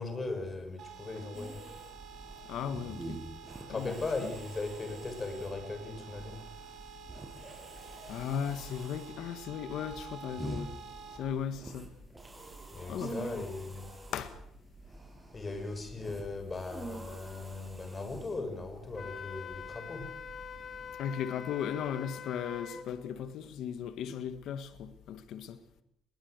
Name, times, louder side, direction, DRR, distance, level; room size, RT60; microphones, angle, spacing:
voice 1, 0.0-1.6 3.7-6.4 12.7-13.9 15.3-20.1, left 3 dB, 30° left, 6.8 m, -38 dB
sound 1, 0.8-11.2, right 6 dB, 70° right, 6.4 m, -50 dB
sound 2, 1.3-21.0, right 2 dB, 20° right, 7.0 m, -47 dB
voice 2, 2.5-3.2 3.7-3.9 4.2-4.3 8.1-10.7 11.1-11.9 12.9-13.4 14.1-14.4 21.0-25.6, left 8 dB, 80° left, 1.7 m, -37 dB
Wind instrument woodwind instrument, 18.9-22.9, left 7 dB, 50° left, 2.2 m, -44 dB
21.5 x 20.0 x 8.2 m
cardioid pair, 90°, 0 cm